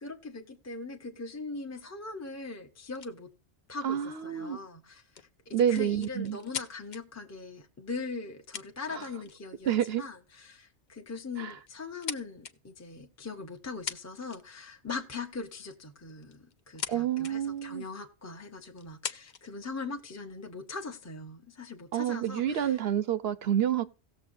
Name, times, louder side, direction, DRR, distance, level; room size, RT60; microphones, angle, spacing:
voice 1, 0.0-3.3 3.7-22.8, left 4 dB, 15° left, 0.8 m, -41 dB
sound 1, 2.9-3.1 5.1-7.0 8.1-8.2 8.5-9.3 9.7-9.9 10.9-11.1 11.5-12.5 13.6-13.7 13.9-14.6 16.1-16.9 17.2-17.3 18.0-18.1 18.8-19.5 20.2-20.9, left 7 dB, 50° left, 0.6 m, -40 dB
voice 2, 3.8-4.6 5.5-6.4 8.9-9.1 9.7-10.0 11.4-11.5 16.9-17.8 21.9-23.8, right 10 dB, 65° right, 0.8 m, -28 dB
17.5 x 7.1 x 2.6 m
omnidirectional pair, 1.2 m